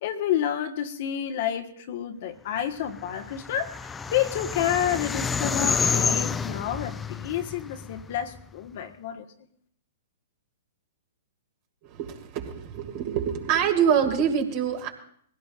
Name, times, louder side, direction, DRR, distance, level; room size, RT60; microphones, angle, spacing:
voice 1, 0.0-9.3, left 10 dB, 55° left, 5 dB, 1.4 m, -29 dB
sound 1, 3.0-8.4, left 5 dB, 15° left, 0.5 m, -29 dB
voice 2, 11.8-14.9, right 8 dB, 45° right, 4 dB, 2.3 m, -25 dB
21.5 x 16.5 x 2.5 m, 0.65 s
figure-of-eight pair, 115°, 0 cm